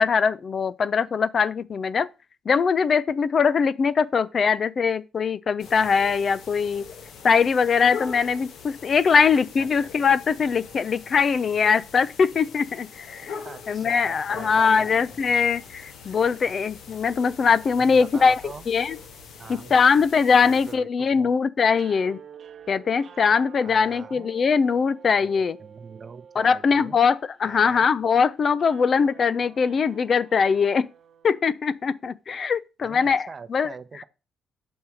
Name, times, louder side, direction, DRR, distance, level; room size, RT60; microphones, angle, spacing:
voice 1, 0.0-2.1 2.5-6.8 7.2-13.4 13.7-18.4 18.7-19.0 19.5-22.2 22.7-25.6 26.4-30.9 31.2-33.7, left 5 dB, 45° left, 0.3 m, -21 dB
sound 1, 5.6-20.7, left 6 dB, 75° left, 1.1 m, -42 dB
voice 2, 9.6-9.9 13.4-14.9 17.7-18.6 19.4-19.8 20.4-21.3 23.6-24.3 25.2-25.3 25.6-27.0 27.4-27.9 32.8-34.0, right 5 dB, 40° right, 0.7 m, -43 dB
sound 2, 21.7-31.9, right 7 dB, 60° right, 0.9 m, -49 dB
7.0 x 3.2 x 6.1 m
cardioid pair, 90°, 0 cm